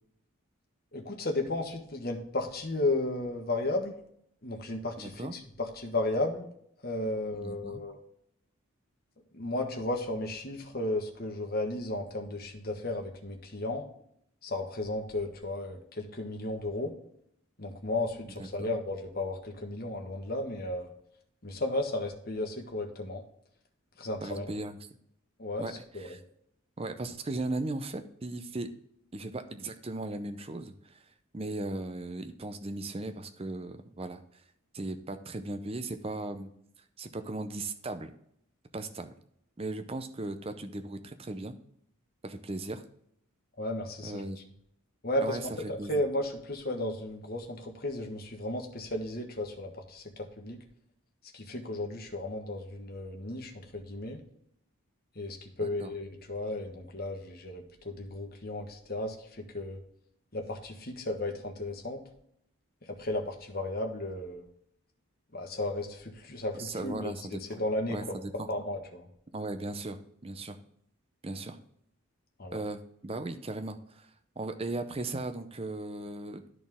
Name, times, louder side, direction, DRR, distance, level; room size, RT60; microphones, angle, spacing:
voice 1, 0.9-3.9 4.4-6.4 6.8-8.0 9.3-13.8 14.4-16.9 17.6-20.9 21.4-23.2 24.0-24.5 25.4-26.1 43.6-44.2 45.0-50.6 51.3-54.2 55.1-59.8 60.3-62.0 62.9-64.4 65.3-67.1 67.4-69.1 72.4-72.6, left 2 dB, 45° left, 3 dB, 1.3 m, -34 dB
voice 2, 5.0-5.3 7.3-7.8 18.4-18.7 24.2-24.8 25.6-26.2 26.8-28.7 29.1-31.0 31.3-34.4 34.7-36.5 37.0-38.1 38.7-39.1 39.6-41.5 42.2-42.8 44.0-44.4 45.2-45.4 45.8-45.9 55.6-55.9 66.6-67.6 67.9-68.5 69.3-70.6 71.2-71.6 72.5-74.1 74.4-76.4, right 2 dB, 25° right, 8 dB, 0.6 m, -37 dB
12.5 x 4.2 x 3.6 m, 0.72 s
head